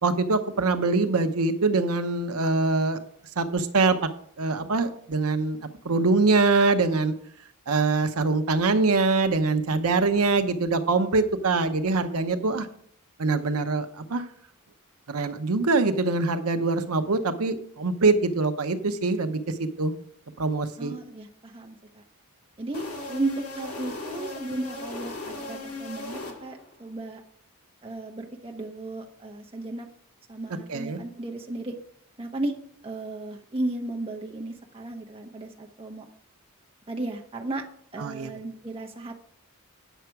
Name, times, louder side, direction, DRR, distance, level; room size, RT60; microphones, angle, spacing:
voice 1, 0.0-3.0 3.4-4.1 4.4-5.6 5.8-7.1 7.7-12.7 13.2-14.3 15.1-19.9 20.4-20.9 30.7-31.0 38.0-38.3, right 3 dB, 80° right, 8 dB, 0.8 m, -24 dB
voice 2, 20.8-22.0 22.6-27.2 27.8-29.9 30.3-31.8 32.2-32.5 32.8-36.1 36.9-37.6 37.9-39.1, right 2 dB, 25° right, 1 dB, 1.1 m, -34 dB
sound 1, 22.7-26.8, left 2 dB, 80° left, 1.9 m, -37 dB
9.2 x 6.8 x 4.6 m, 0.63 s
head